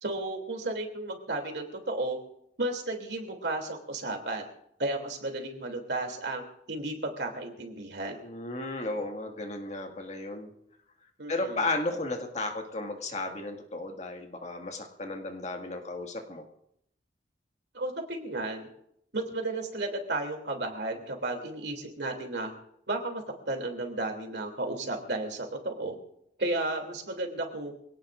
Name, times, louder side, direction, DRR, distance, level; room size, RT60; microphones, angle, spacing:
voice 1, 0.0-2.2 2.6-4.5 4.8-6.4 6.7-8.2 11.2-11.6 17.7-18.7 19.1-22.5 22.9-25.9 26.4-27.7, right 2 dB, 65° right, 3 dB, 2.9 m, -33 dB
voice 2, 8.2-10.5 11.3-16.4, left 2 dB, 40° left, 3 dB, 1.9 m, -34 dB
25.0 x 18.0 x 2.6 m, 0.73 s
head